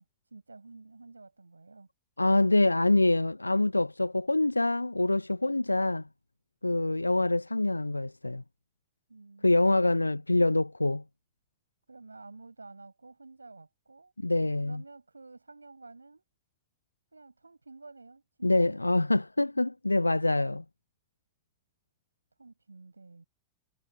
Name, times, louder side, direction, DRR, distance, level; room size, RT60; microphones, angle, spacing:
voice 1, 0.0-1.9 9.1-10.2 11.9-14.1 14.6-16.3 17.1-18.8 22.4-23.2, right 3 dB, 80° right, 7.9 m, -51 dB
voice 2, 2.2-6.0 6.6-8.4 9.4-11.0 14.2-14.8 18.4-20.6, left 2 dB, 85° left, 0.9 m, -25 dB
figure-of-eight pair, 90°, 0 cm